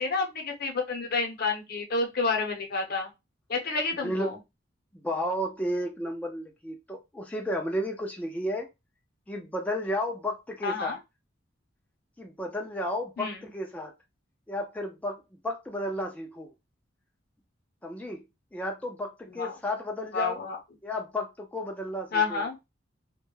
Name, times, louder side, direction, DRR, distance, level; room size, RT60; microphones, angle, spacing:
voice 1, 0.0-3.1 3.5-4.4 10.6-11.0 13.2-13.4 19.4-19.5 20.1-20.6 22.1-22.6, left 4 dB, 55° left, 0.7 m, -29 dB
voice 2, 4.0-4.3 5.0-8.7 9.3-11.0 12.2-13.9 14.5-16.5 17.8-18.2 18.5-20.4 20.8-22.5, left 1 dB, 10° left, 0.3 m, -33 dB
2.2 x 2.0 x 3.0 m
head